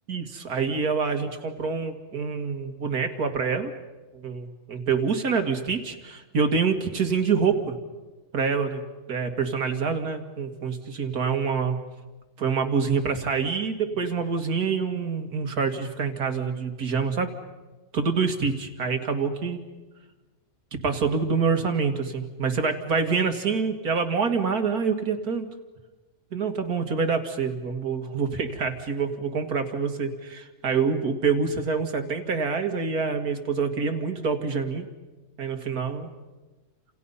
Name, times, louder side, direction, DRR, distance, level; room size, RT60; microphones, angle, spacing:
voice 1, 0.1-3.7 4.2-7.8 8.3-8.8 9.1-11.8 12.4-17.3 17.9-19.6 20.7-25.5 26.3-34.9 35.4-36.1, right 5 dB, 75° right, 6 dB, 2.4 m, -26 dB
30.0 x 28.0 x 5.6 m, 1.2 s
omnidirectional pair, 1.6 m